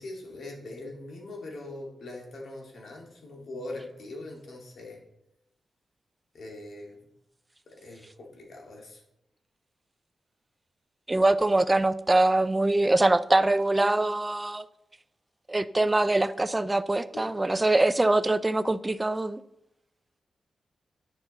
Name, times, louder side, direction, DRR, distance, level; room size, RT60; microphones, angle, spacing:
voice 1, 0.0-5.0 6.3-7.1 7.7-9.0 17.1-17.2, left 2 dB, 70° left, 0 dB, 2.1 m, -41 dB
voice 2, 11.1-14.7 15.5-19.4, right 2 dB, 20° right, 14 dB, 0.4 m, -23 dB
10.0 x 5.5 x 4.0 m, 0.86 s
cardioid pair, 90°, 0 cm